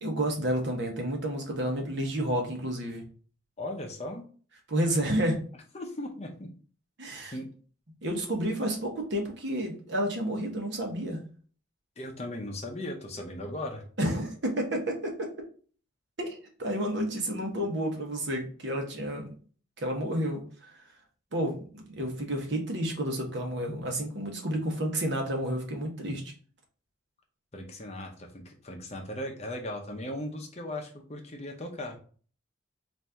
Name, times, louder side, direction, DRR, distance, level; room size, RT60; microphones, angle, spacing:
voice 1, 0.0-3.1 4.7-5.4 7.0-7.4 8.0-11.2 14.0-15.1 16.2-19.3 19.8-20.8 21.3-26.3, right 1 dB, 60° right, 1 dB, 1.1 m, -30 dB
voice 2, 3.6-4.3 5.7-6.5 7.3-7.5 12.0-13.9 17.5-17.6 27.5-32.0, left 1 dB, 30° left, 2 dB, 0.6 m, -37 dB
4.1 x 2.6 x 3.4 m, 0.42 s
head